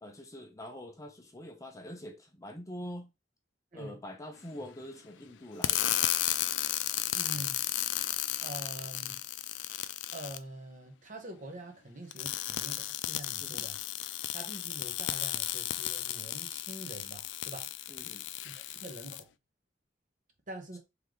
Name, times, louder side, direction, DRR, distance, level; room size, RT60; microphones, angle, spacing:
voice 1, 0.0-3.1 3.7-5.9 13.4-13.7 17.9-18.2, equal, 20° left, 0.7 m, -44 dB
sound 1, 5.6-10.4 12.1-19.2, left 13 dB, 80° left, 0.4 m, -34 dB
voice 2, 7.1-7.5 8.4-9.2 10.1-13.8 14.3-17.7 18.4-19.3 20.5-20.8, right 1 dB, 45° right, 1.1 m, -45 dB
3.7 x 3.4 x 3.2 m
head